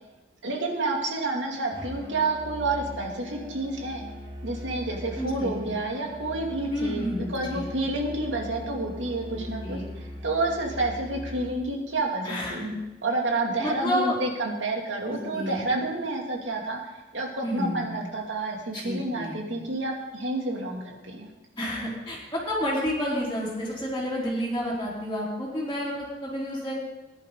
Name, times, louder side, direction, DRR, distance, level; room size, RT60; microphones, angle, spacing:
voice 1, 0.4-4.0 4.4-12.6 13.0-16.8 17.1-21.3, right 2 dB, 90° right, 0 dB, 2.7 m, -29 dB
Musical instrument, 1.7-11.6, equal, 30° right, 4.3 m, -40 dB
voice 2, 5.2-5.8 6.7-7.7 9.3-9.8 12.2-12.7 13.6-14.2 15.3-15.7 17.4-17.8 18.7-19.3 21.6-25.9 26.2-26.7, equal, 15° left, -11 dB, 3.4 m, -30 dB
20.0 x 10.5 x 4.0 m, 1.1 s
head